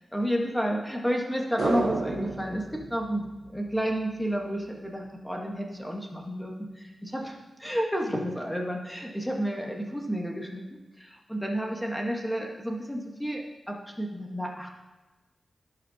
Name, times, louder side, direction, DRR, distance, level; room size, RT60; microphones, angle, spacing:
voice 1, 0.1-3.2 3.5-10.6 11.0-14.7, equal, 5° left, 0 dB, 1.1 m, -31 dB
sound 1, 1.6-4.1 4.3-4.4, right 4 dB, 70° right, 0.6 m, -33 dB
15.0 x 5.9 x 2.8 m, 1.2 s
wide cardioid pair, 155°, 0 cm